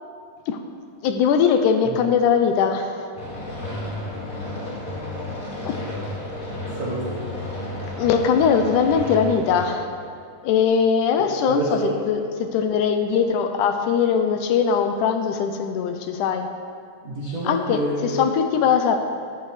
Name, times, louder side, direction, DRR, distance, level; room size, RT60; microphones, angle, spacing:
voice 1, 1.0-3.1 5.7-5.8 8.0-9.9 10.4-16.5 17.4-19.0, left 6 dB, 80° left, 6 dB, 2.1 m, -21 dB
sound 1, 3.1-9.7, left 1 dB, 30° left, 1.9 m, -32 dB
voice 2, 6.7-7.3 11.2-11.9 17.0-18.2, right 1 dB, 40° right, -7 dB, 1.2 m, -28 dB
13.0 x 10.5 x 3.2 m, 2.3 s
omnidirectional pair, 3.7 m